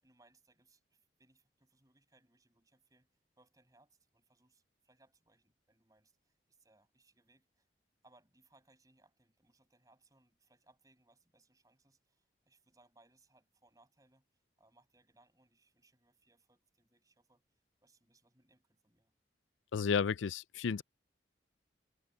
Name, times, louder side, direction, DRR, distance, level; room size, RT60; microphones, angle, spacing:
voice 1, 0.0-7.7 8.0-14.3 14.6-19.1, right 2 dB, 20° right, 7.2 m, -70 dB
voice 2, 19.7-20.8, left 6 dB, 90° left, 0.4 m, -32 dB
head